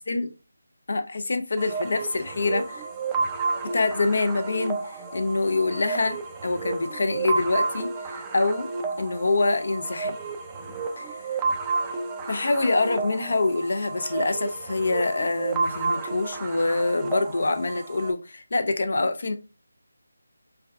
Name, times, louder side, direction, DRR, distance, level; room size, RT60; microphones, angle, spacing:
voice 1, 0.9-2.9 3.7-8.7 9.0-10.1 11.0-11.2 12.3-19.3, left 3 dB, 60° left, 0.5 m, -25 dB
sound 1, 1.6-18.1, right 4 dB, 10° right, 0.4 m, -31 dB
3.4 x 3.3 x 2.3 m
figure-of-eight pair, 165°, 0 cm